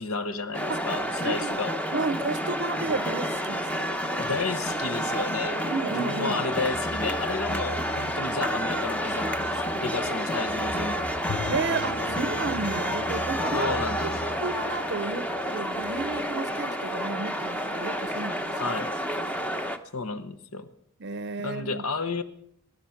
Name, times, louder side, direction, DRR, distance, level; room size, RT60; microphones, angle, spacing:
voice 1, 0.0-1.7 4.1-11.1 13.5-14.4 18.5-18.9 19.9-20.7 21.4-22.2, left 4 dB, 75° left, 1.0 m, -32 dB
sound 1, 0.5-19.8, equal, 5° left, 0.8 m, -29 dB
voice 2, 1.2-1.6 1.9-4.0 5.7-6.4 11.5-13.7 14.0-14.1 14.4-18.6 19.2-19.3 21.0-21.8, right 4 dB, 50° right, 0.6 m, -32 dB
sound 2, 6.5-16.3, equal, 40° left, 3.9 m, -42 dB
Bowed string instrument, 11.3-15.5, left 6 dB, 90° left, 0.6 m, -41 dB
21.0 x 11.5 x 5.8 m
head